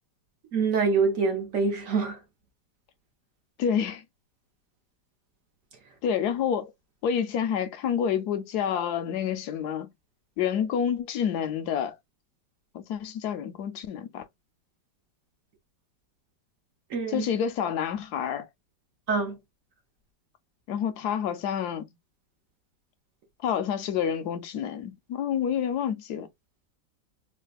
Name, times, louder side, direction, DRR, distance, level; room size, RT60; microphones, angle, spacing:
voice 1, 0.5-2.2 16.9-17.3 19.1-19.4, right 4 dB, 55° right, 1.1 m, -25 dB
voice 2, 3.6-4.0 6.0-6.7 7.0-9.9 10.4-12.0 12.7-14.3 17.1-18.5 20.7-21.9 23.4-26.3, left 8 dB, 75° left, 1.0 m, -28 dB
4.1 x 2.4 x 2.2 m
omnidirectional pair, 2.0 m